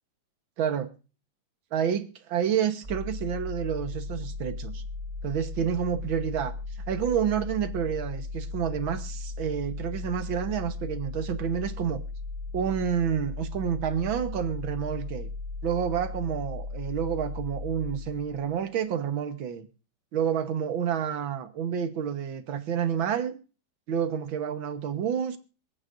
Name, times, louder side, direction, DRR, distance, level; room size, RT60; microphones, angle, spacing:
voice 1, 0.6-0.9 1.7-4.8 5.2-6.6 6.9-12.0 12.5-15.3 15.6-19.7 20.1-23.4 23.9-25.4, right 8 dB, 75° right, 1.9 m, -29 dB
sound 1, 2.8-18.6, left 3 dB, 15° right, 2.2 m, -36 dB
26.5 x 8.9 x 2.6 m
omnidirectional pair, 2.2 m